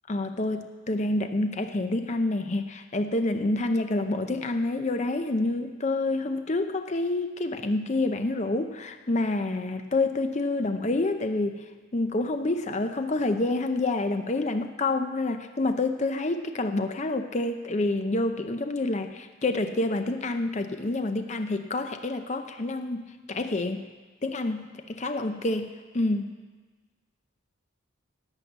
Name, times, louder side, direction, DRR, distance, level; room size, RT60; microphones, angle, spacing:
voice 1, 0.1-11.6 11.9-23.9 24.2-26.3, left 2 dB, 35° left, 7 dB, 0.6 m, -28 dB
11.5 x 9.5 x 8.0 m, 1.4 s
head